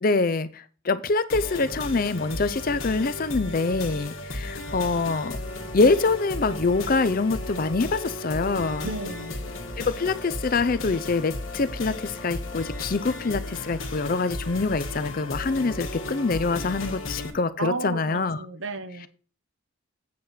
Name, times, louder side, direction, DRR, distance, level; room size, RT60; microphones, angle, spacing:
voice 1, 0.0-5.4 5.7-8.9 9.8-18.4, left 3 dB, 45° left, 13 dB, 0.5 m, -25 dB
sound 1, 1.3-17.3, left 1 dB, 70° left, 1.6 m, -35 dB
voice 2, 8.8-9.4 17.6-19.1, right 3 dB, 65° right, 10 dB, 0.9 m, -33 dB
8.5 x 4.3 x 6.4 m, 0.39 s
head